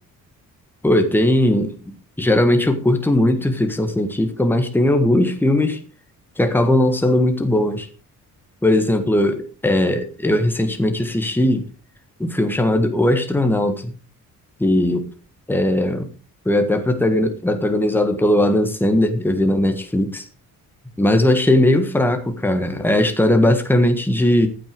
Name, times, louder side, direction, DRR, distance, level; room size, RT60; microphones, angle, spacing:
voice 1, 0.8-1.7 2.2-5.8 6.4-7.9 8.6-11.7 12.2-13.9 14.6-15.1 15.5-16.1 16.4-20.2 21.0-24.5, left 1 dB, 5° left, 6 dB, 1.6 m, -18 dB
14.5 x 9.2 x 4.7 m, 0.35 s
wide cardioid pair, 175°, 34 cm